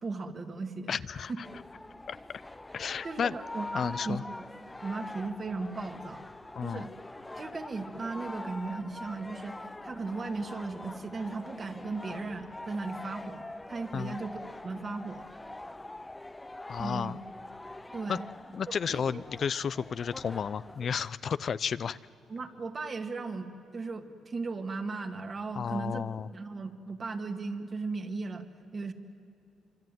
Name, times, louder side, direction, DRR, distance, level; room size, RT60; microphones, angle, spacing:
voice 1, 0.0-1.0 3.0-4.4 4.8-6.2 6.6-6.9 7.3-14.4 14.6-15.3 16.8-17.2 17.9-18.2 18.7-19.2 22.3-26.0 26.3-28.5 28.7-28.9, right 3 dB, 40° right, 7 dB, 2.2 m, -37 dB
voice 2, 0.9-1.5 2.1-2.2 2.7-3.4 3.7-4.2 6.5-6.8 13.9-14.2 16.7-17.2 18.1-18.2 18.5-22.0 25.5-26.3, left 7 dB, 50° left, 16 dB, 0.5 m, -32 dB
sound 1, 1.4-20.9, left 2 dB, 15° left, 0.8 m, -44 dB
25.5 x 24.5 x 9.3 m, 2.7 s
cardioid pair, 90°, 0 cm